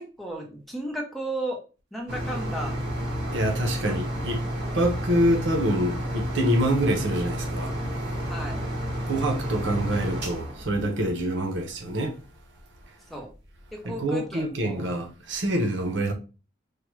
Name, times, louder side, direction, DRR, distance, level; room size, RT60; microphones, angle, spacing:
voice 1, 0.0-1.6 1.9-2.8 3.8-4.0 4.3-4.8 8.3-8.6 13.1-13.3 13.7-15.0, right 1 dB, ahead, 0.7 m, -35 dB
sound 1, 2.1-11.6 12.2-12.3 12.7-12.8, equal, 60° right, 1.5 m, -31 dB
voice 2, 3.3-4.4 4.7-7.8 9.1-12.2 13.8-16.1, right 1 dB, 85° right, 0.9 m, -26 dB
4.8 x 2.2 x 3.1 m
head